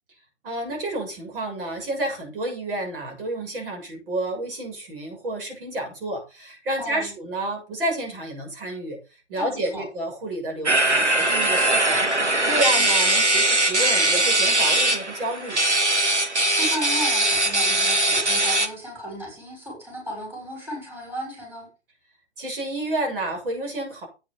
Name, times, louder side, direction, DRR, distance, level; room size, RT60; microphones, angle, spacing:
voice 1, 0.4-9.0 9.3-15.6 22.4-24.1, right 1 dB, 55° right, 1 dB, 7.1 m, -30 dB
voice 2, 6.8-7.1 9.4-9.9 12.5-12.9 16.3-21.7, equal, 5° right, -3 dB, 6.8 m, -35 dB
sound 1, 10.7-18.7, right 1 dB, 85° right, 2.2 m, -21 dB
9.4 x 8.6 x 5.6 m, 0.30 s
figure-of-eight pair, 125°, 34 cm